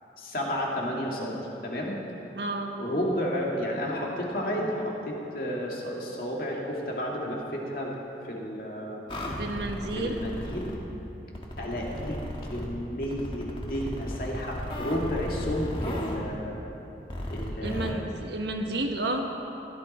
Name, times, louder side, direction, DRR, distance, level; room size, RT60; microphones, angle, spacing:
voice 1, 0.2-1.4 1.6-2.0 2.8-7.9 8.3-9.1 10.0-10.7 11.6-12.2 12.5-16.6 17.3-18.1, equal, 50° left, -2 dB, 2.2 m, -32 dB
voice 2, 2.3-2.8 9.4-10.2 17.6-19.3, right 1 dB, 75° right, 3 dB, 1.2 m, -31 dB
sound 1, 9.1-10.8 11.3-12.7 13.0-16.2 17.1-17.9, equal, 30° left, 1.4 m, -35 dB
16.0 x 12.5 x 4.3 m, 3.0 s
head